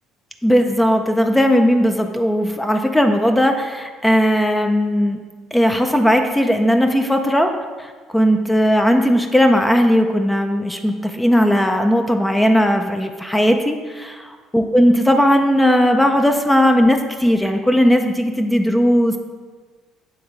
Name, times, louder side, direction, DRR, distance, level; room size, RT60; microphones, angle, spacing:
voice 1, 0.4-5.2 5.5-7.5 7.8-19.2, equal, 10° left, 5 dB, 0.5 m, -17 dB
7.8 x 3.1 x 4.7 m, 1.4 s
supercardioid pair, 75°, 0 cm